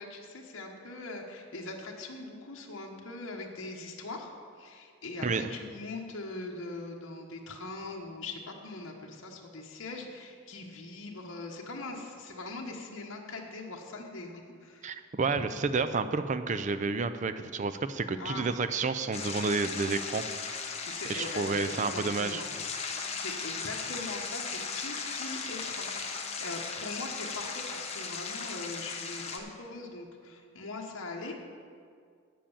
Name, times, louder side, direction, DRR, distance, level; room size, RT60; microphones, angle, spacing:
voice 1, 0.0-4.3 4.6-14.9 15.3-15.4 18.2-18.5 20.9-22.5 23.0-31.4, left 2 dB, 60° left, -1 dB, 1.2 m, -41 dB
voice 2, 14.8-20.2 21.1-22.4, right 4 dB, 35° right, 10 dB, 0.4 m, -30 dB
sound 1, 19.1-29.4, left 5 dB, 30° left, 0.9 m, -37 dB
8.6 x 7.6 x 7.1 m, 2.1 s
head